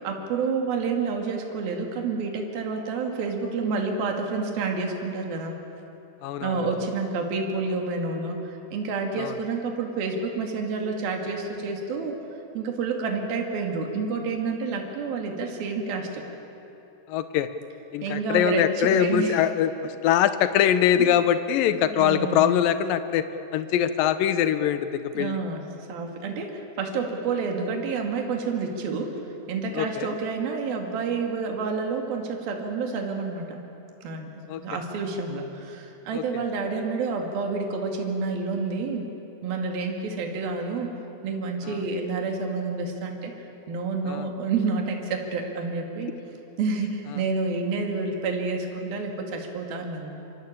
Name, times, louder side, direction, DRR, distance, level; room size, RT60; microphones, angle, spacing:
voice 1, 0.0-5.5 6.4-12.2 12.5-16.2 18.0-19.4 21.0-21.1 22.0-22.5 25.1-29.1 29.5-33.6 34.0-34.3 34.6-39.1 39.4-40.9 41.2-43.3 43.7-46.1 46.6-50.1, right 4 dB, 65° right, 2 dB, 4.0 m, -29 dB
voice 2, 6.2-6.7 9.2-9.4 17.1-17.5 17.9-23.2 23.5-25.4 29.7-30.2 34.5-34.8 36.1-36.4 41.6-41.8 44.1-44.3, left 10 dB, 70° left, 11 dB, 2.3 m, -23 dB
26.0 x 24.5 x 8.8 m, 2.9 s
omnidirectional pair, 4.7 m